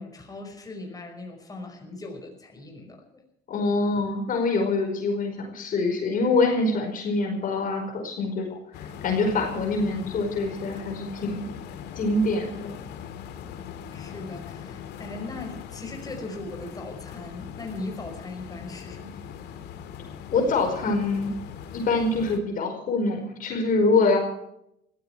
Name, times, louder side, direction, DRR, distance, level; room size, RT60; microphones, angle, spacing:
voice 1, 0.0-3.2 13.9-19.2, left 2 dB, 20° left, 2 dB, 5.5 m, -39 dB
voice 2, 3.5-11.5 12.0-12.7 20.3-21.3 21.7-24.2, left 3 dB, 55° left, 3 dB, 5.0 m, -25 dB
sound 1, 8.7-22.4, left 8 dB, 80° left, 2.3 m, -40 dB
20.5 x 15.0 x 4.6 m, 0.78 s
cardioid pair, 110°, 17 cm